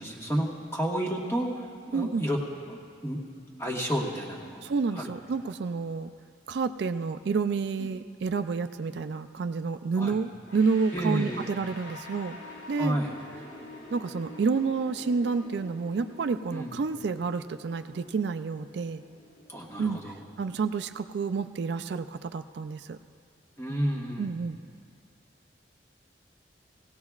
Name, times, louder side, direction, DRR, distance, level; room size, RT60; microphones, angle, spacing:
voice 1, 0.0-2.4 2.7-2.8 3.0-3.2 3.6-4.7 4.9-5.1 10.0-10.2 10.9-11.5 12.8-13.1 16.5-16.8 19.5-20.2 23.6-24.4, equal, 15° left, -1 dB, 1.3 m, -31 dB
voice 2, 1.9-2.2 4.6-6.1 6.5-12.4 12.7-13.0 13.9-19.0 19.8-20.0 20.4-23.0 24.2-24.6, right 4 dB, 65° right, 9 dB, 0.3 m, -29 dB
sound 1, 10.5-21.3, left 2 dB, 85° left, 3.2 m, -48 dB
19.0 x 17.0 x 2.4 m, 2.3 s
head